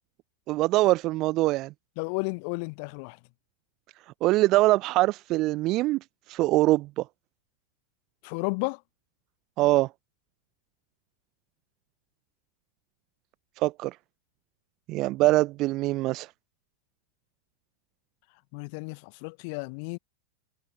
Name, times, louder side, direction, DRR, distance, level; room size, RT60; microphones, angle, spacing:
voice 1, 0.5-1.7 4.2-6.0 6.3-7.0 9.6-9.9 13.6-14.0 14.9-16.3, right 18 dB, 40° right, 0.8 m, -23 dB
voice 2, 2.0-3.2 8.2-8.8 18.5-20.0, left 35 dB, 45° left, 1.0 m, -32 dB
figure-of-eight pair, 90°, 0 cm